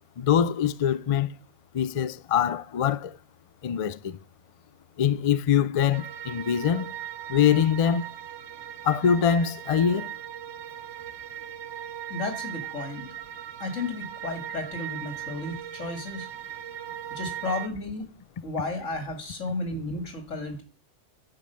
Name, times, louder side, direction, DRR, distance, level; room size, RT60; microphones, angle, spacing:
voice 1, 0.2-1.3 1.7-3.1 3.6-4.2 5.0-6.9 7.3-8.1 8.8-10.1, left 8 dB, 65° left, 0.3 m, -23 dB
sound 1, 5.9-17.7, right 11 dB, 70° right, 1.0 m, -39 dB
voice 2, 12.1-13.1 13.6-16.3 17.1-18.1 18.4-20.6, left 2 dB, 80° left, 2.4 m, -33 dB
10.5 x 5.2 x 6.7 m
omnidirectional pair, 1.3 m